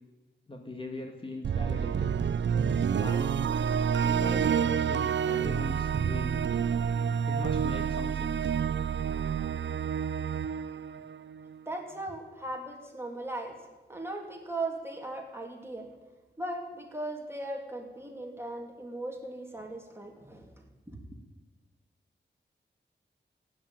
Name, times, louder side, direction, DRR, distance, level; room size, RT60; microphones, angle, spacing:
voice 1, 0.5-2.2 2.9-3.3 4.2-6.8 7.2-8.5, left 1 dB, 30° left, 3 dB, 1.8 m, -41 dB
sound 1, 1.4-11.6, right 7 dB, 75° right, 0.5 m, -28 dB
voice 2, 11.7-13.6 13.9-15.9 16.4-21.0, right 2 dB, 10° right, 1 dB, 3.0 m, -38 dB
16.0 x 9.7 x 8.9 m, 1.2 s
wide cardioid pair, 95°, 19 cm